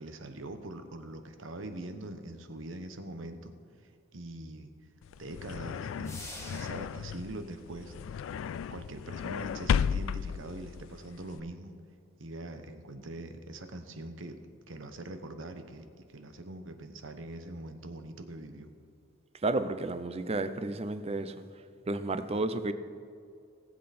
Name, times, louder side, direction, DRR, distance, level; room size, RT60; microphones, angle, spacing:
voice 1, 0.0-3.5 3.8-4.7 5.2-7.9 8.7-11.8 12.2-14.4 14.7-18.7, right 1 dB, 80° right, 8 dB, 1.0 m, -43 dB
sound 1, 5.0-11.4, left 7 dB, 90° left, 0.3 m, -34 dB
sound 2, 6.0-7.1, left 2 dB, 15° left, 1.7 m, -44 dB
voice 2, 19.4-21.4 21.9-22.7, right 2 dB, 30° right, 11 dB, 0.6 m, -31 dB
19.0 x 7.7 x 4.2 m, 2.3 s
head